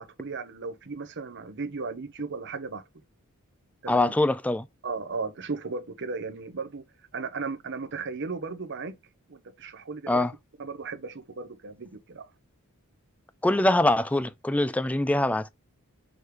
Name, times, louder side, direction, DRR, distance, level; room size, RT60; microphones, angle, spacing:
voice 1, 0.0-2.8 3.8-4.1 4.8-6.8 7.1-8.9 9.3-10.3 10.6-12.3, right 4 dB, 55° right, 0.9 m, -35 dB
voice 2, 3.9-4.7 10.1-10.3 13.4-15.5, left 1 dB, 5° left, 0.3 m, -23 dB
6.5 x 3.1 x 5.0 m
head